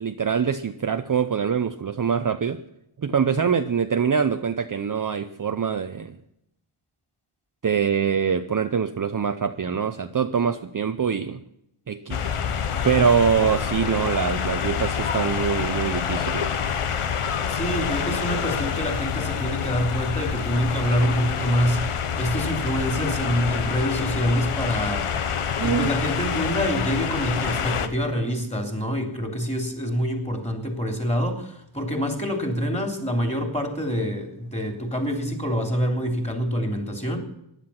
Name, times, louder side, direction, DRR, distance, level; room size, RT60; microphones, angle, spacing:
voice 1, 0.0-2.6 3.0-6.2 7.6-11.4 11.9-12.2 12.8-16.6 25.6-25.9, right 6 dB, 40° right, 9 dB, 0.7 m, -24 dB
sound 1, 12.1-27.9, left 7 dB, 90° left, 1.2 m, -27 dB
voice 2, 17.5-25.1 25.6-37.2, equal, 15° left, 3 dB, 3.2 m, -26 dB
15.5 x 11.0 x 5.8 m, 0.79 s
wide cardioid pair, 100°, 50 cm